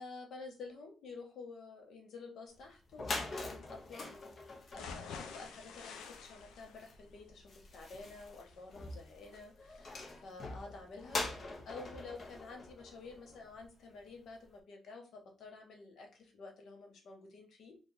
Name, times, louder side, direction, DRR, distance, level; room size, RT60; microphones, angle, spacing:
voice 1, 0.0-4.1 4.4-11.3 11.7-17.8, left 3 dB, 65° left, 3 dB, 0.9 m, -50 dB
sound 1, 2.6-2.7 2.9-13.7, left 2 dB, 40° left, 0.8 m, -44 dB
sound 2, 4.7-12.7 13.1-13.2 13.6-13.7, left 5 dB, 85° left, 0.5 m, -52 dB
2.8 x 2.3 x 3.8 m, 0.37 s
cardioid pair, 90°, 0 cm